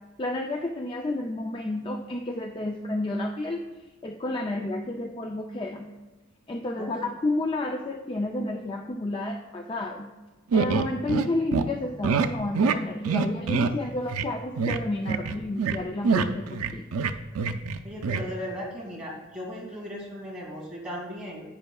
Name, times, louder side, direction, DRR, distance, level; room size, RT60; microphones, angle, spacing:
voice 1, 0.2-3.7 4.0-5.9 6.5-10.1 10.5-16.9, left 2 dB, 20° left, 3 dB, 0.4 m, -31 dB
sound 1, 10.5-11.3 11.5-11.6 12.0-12.3 12.5-12.8 13.0-13.7 14.1-14.3 14.6-14.8 15.1-15.8 16.0-17.8 18.0-18.2, right 5 dB, 85° right, 0.5 m, -25 dB
voice 2, 17.8-21.4, equal, 5° right, -5 dB, 2.5 m, -37 dB
10.5 x 8.8 x 2.3 m, 1.2 s
head